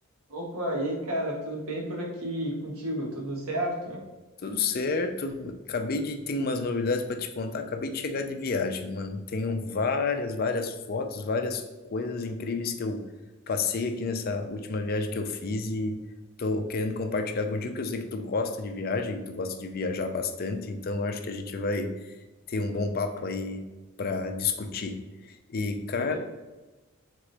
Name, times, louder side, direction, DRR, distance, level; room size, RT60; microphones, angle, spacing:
voice 1, 0.3-4.0 26.0-26.2, right 1 dB, 85° right, -2 dB, 1.4 m, -31 dB
voice 2, 4.4-11.6 11.9-13.0 13.5-16.0 16.4-22.2 22.5-23.6 24.0-25.0 25.2-26.2, left 3 dB, 45° left, 6 dB, 0.4 m, -30 dB
3.9 x 3.6 x 3.3 m, 1.1 s
head